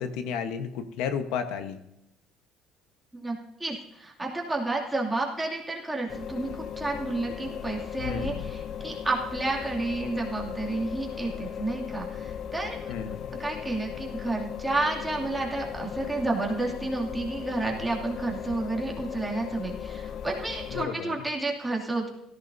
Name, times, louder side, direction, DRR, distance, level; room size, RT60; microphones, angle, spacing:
voice 1, 0.0-1.8 8.0-8.4 12.9-13.3 20.7-21.2, left 7 dB, 80° left, 8 dB, 1.1 m, -32 dB
voice 2, 3.6-12.9 13.4-22.1, right 2 dB, 5° right, -2 dB, 2.5 m, -31 dB
sound 1, 6.1-20.9, left 8 dB, 45° left, 0.6 m, -37 dB
17.5 x 14.5 x 2.7 m, 0.86 s
cardioid pair, 145°, 0 cm